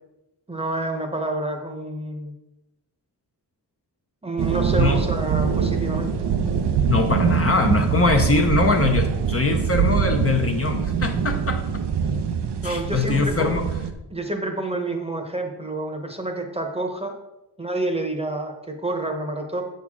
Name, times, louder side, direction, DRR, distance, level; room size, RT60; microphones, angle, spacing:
voice 1, 0.5-2.3 4.2-6.1 12.6-13.5 14.1-17.2 17.6-19.6, right 2 dB, 15° right, 4 dB, 0.9 m, -28 dB
sound 1, 4.4-13.9, right 7 dB, 85° right, 0.7 m, -23 dB
voice 2, 6.9-11.6 12.6-13.6, left 4 dB, 35° left, 3 dB, 0.6 m, -22 dB
8.0 x 6.6 x 3.6 m, 0.95 s
wide cardioid pair, 160°, 40 cm